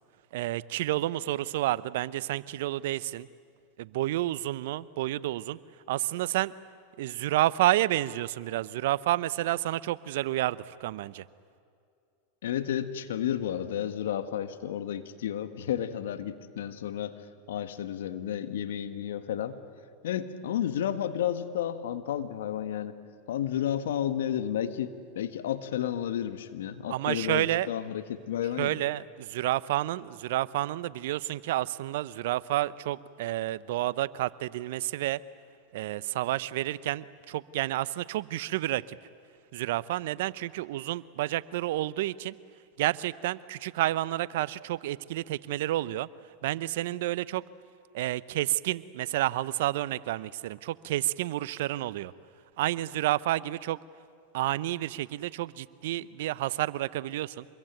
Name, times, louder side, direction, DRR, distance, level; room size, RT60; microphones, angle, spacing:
voice 1, 0.3-3.3 3.8-5.6 5.9-6.5 7.0-11.2 26.9-27.7 28.6-35.2 35.7-39.0 39.5-42.3 42.8-46.1 46.4-47.4 47.9-52.1 52.6-53.8 54.3-57.5, right 15 dB, 70° right, 18 dB, 0.7 m, -30 dB
voice 2, 12.4-17.2 17.5-19.6 20.0-23.0 23.3-28.8, left 10 dB, 75° left, 10 dB, 1.6 m, -32 dB
26.0 x 22.0 x 9.1 m, 2.4 s
hypercardioid pair, 100°, 0 cm